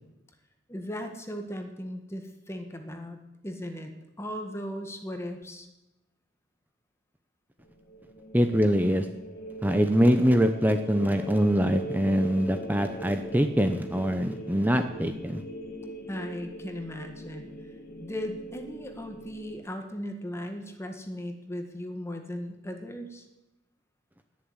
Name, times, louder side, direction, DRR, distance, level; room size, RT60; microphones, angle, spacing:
voice 1, 0.7-3.2 3.4-3.9 4.2-5.7 16.1-17.5 18.0-23.2, equal, 15° left, 5 dB, 1.7 m, -37 dB
sound 1, 7.7-19.6, right 1 dB, 50° left, 2.2 m, -41 dB
voice 2, 8.3-9.1 9.6-15.4, equal, 10° right, 7 dB, 0.7 m, -24 dB
19.5 x 7.2 x 9.7 m, 0.97 s
head